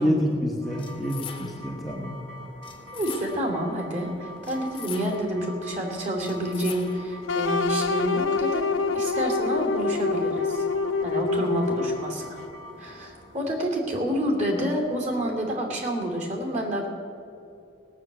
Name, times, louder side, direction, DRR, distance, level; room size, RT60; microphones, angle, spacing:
voice 1, 0.0-2.2, equal, ahead, -3 dB, 1.1 m, -27 dB
sound 1, 0.6-15.6, left 1 dB, 70° right, 2.5 m, -45 dB
sound 2, 0.8-1.8 2.6-3.6 4.4-5.4 6.2-7.2, left 8 dB, 25° left, 1.1 m, -42 dB
voice 2, 2.9-8.7 8.9-10.6 11.0-12.4 12.8-16.9, equal, 35° right, 1 dB, 2.6 m, -28 dB
sound 3, 7.3-12.2, left 4 dB, 90° left, 0.7 m, -26 dB
17.5 x 6.5 x 8.7 m, 2.7 s
head